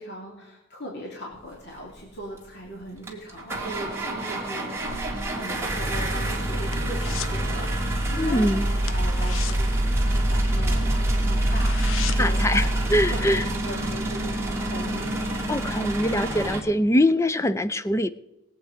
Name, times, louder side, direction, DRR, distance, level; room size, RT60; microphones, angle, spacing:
voice 1, 0.0-4.7 5.0-12.7 13.1-15.2, equal, 55° left, -2 dB, 2.7 m, -38 dB
sound 1, 2.4-2.5 3.0-16.6, right 1 dB, 10° right, 2.2 m, -26 dB
sound 2, 6.7-7.4 7.7-8.0 8.3-8.4 8.8-10.7 11.0-11.1 11.4-12.5 12.8-12.9, left 8 dB, 70° left, 0.8 m, -37 dB
voice 2, 8.2-8.6 12.2-13.4 15.5-18.1, left 1 dB, 15° left, 15 dB, 0.4 m, -23 dB
20.5 x 8.3 x 5.2 m, 0.96 s
head